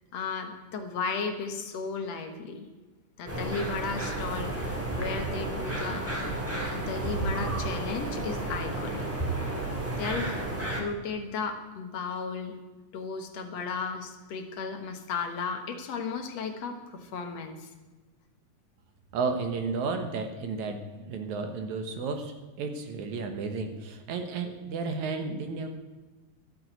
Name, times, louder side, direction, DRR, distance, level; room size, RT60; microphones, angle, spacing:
voice 1, 0.1-2.7 3.2-6.1 6.7-9.1 10.0-10.3 10.8-12.6 12.9-17.7, left 5 dB, 60° left, 5 dB, 2.1 m, -34 dB
sound 1, 3.3-10.8, right 2 dB, 5° right, 1.7 m, -32 dB
voice 2, 19.1-25.7, right 4 dB, 65° right, 6 dB, 2.4 m, -33 dB
12.5 x 7.8 x 8.0 m, 1.2 s
omnidirectional pair, 3.8 m